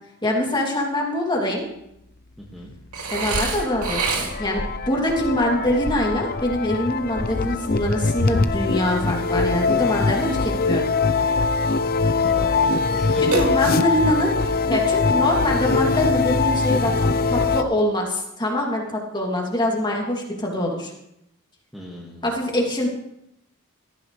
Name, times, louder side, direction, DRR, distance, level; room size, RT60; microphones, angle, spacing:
voice 1, 0.2-1.7 3.1-10.9 13.2-20.9 22.2-22.9, left 1 dB, 20° left, -1 dB, 2.9 m, -24 dB
voice 2, 2.4-2.7 12.2-13.7 21.7-22.4, equal, ahead, -5 dB, 2.0 m, -39 dB
Burping eructation, 2.9-4.6 13.3-14.1, right 4 dB, 80° right, 2.7 m, -27 dB
sound 1, 3.2-8.6, equal, 60° left, 1.8 m, -35 dB
sound 2, 3.2-17.6, left 4 dB, 45° left, 0.7 m, -22 dB
17.5 x 14.0 x 3.3 m, 0.81 s
head